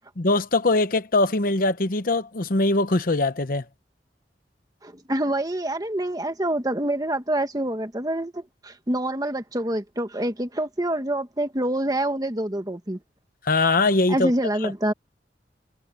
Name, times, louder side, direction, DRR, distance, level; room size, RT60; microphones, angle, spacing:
voice 1, 0.2-3.6 13.4-14.3 14.6-14.7, left 2 dB, 50° left, 0.9 m, -22 dB
voice 2, 4.8-13.0 14.1-14.9, right 1 dB, 20° right, 1.6 m, -26 dB
head